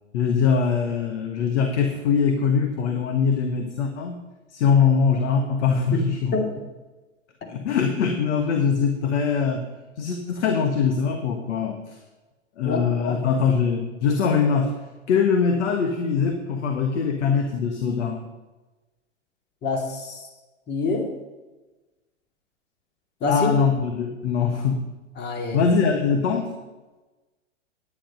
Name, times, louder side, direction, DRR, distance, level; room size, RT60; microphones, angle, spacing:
voice 1, 0.1-4.2 4.5-6.4 7.5-9.7 10.0-12.0 12.6-14.7 15.1-18.2 23.3-24.8 25.5-26.5, left 6 dB, 65° left, 5 dB, 1.4 m, -22 dB
voice 2, 12.6-13.1 19.6-20.2 20.7-21.1 23.2-23.5 25.2-25.7, left 3 dB, 25° left, 3 dB, 2.3 m, -26 dB
10.5 x 9.9 x 5.3 m, 1.2 s
hypercardioid pair, 110°, 38 cm